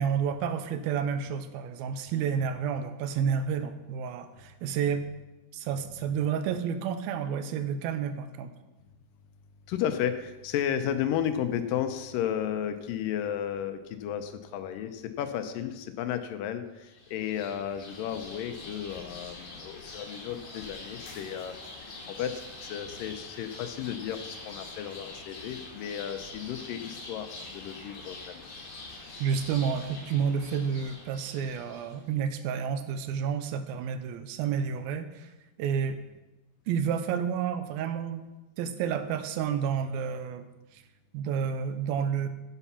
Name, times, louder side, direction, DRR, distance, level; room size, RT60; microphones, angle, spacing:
voice 1, 0.0-5.1 5.5-8.6 29.2-35.3 35.6-36.0 36.7-38.2 38.6-40.5 40.7-40.8 41.1-42.3, right 7 dB, 90° right, 10 dB, 2.6 m, -30 dB
voice 2, 9.7-21.5 22.1-28.4, left 9 dB, 80° left, 9 dB, 2.2 m, -33 dB
sound 1, 16.8-32.0, left 3 dB, 60° left, 3.5 m, -45 dB
9.9 x 8.1 x 5.7 m, 1.1 s
omnidirectional pair, 4.1 m